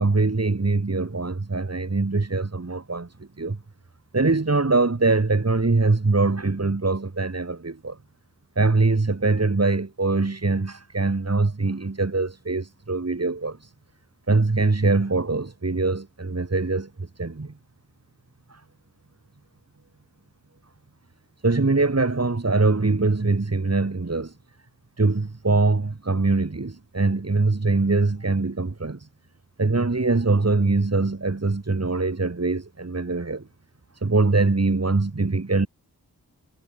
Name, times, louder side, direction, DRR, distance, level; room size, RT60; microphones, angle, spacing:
voice 1, 0.0-3.6 4.1-8.0 8.6-13.7 14.3-17.5 18.5-18.6 21.4-24.4 25.0-29.1 29.6-33.5 33.9-35.7, right 3 dB, 40° right, 3.1 m, -23 dB
wide cardioid pair, 50°, 37 cm